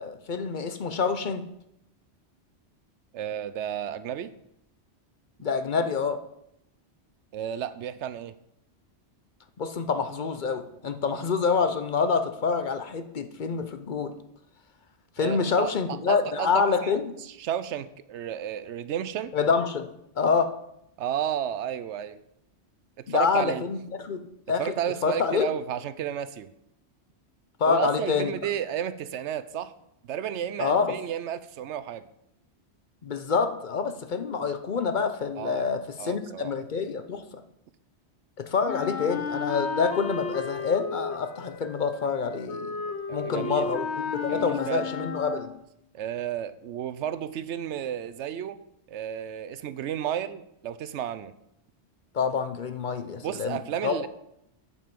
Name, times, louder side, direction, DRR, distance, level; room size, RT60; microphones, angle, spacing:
voice 1, 0.0-1.4 5.4-6.2 9.6-14.1 15.2-17.1 19.3-19.9 20.2-20.6 23.1-24.6 25.0-25.5 27.6-28.3 30.6-30.9 33.0-37.2 38.4-42.8 43.1-43.9 44.1-45.5 52.1-53.9, left 5 dB, 50° left, 8 dB, 0.7 m, -27 dB
voice 2, 3.1-4.3 7.3-8.3 15.2-19.3 21.0-22.2 23.0-23.6 24.6-26.5 27.7-29.7 30.0-32.1 35.4-35.7 36.0-36.5 43.1-43.7 44.3-44.9 45.9-48.6 48.9-51.3 53.2-54.1, right 10 dB, 85° right, 13 dB, 0.9 m, -32 dB
Wind instrument woodwind instrument, 38.7-45.7, left 5 dB, 75° left, 1.1 m, -34 dB
8.1 x 7.5 x 5.3 m, 0.79 s
omnidirectional pair, 1.2 m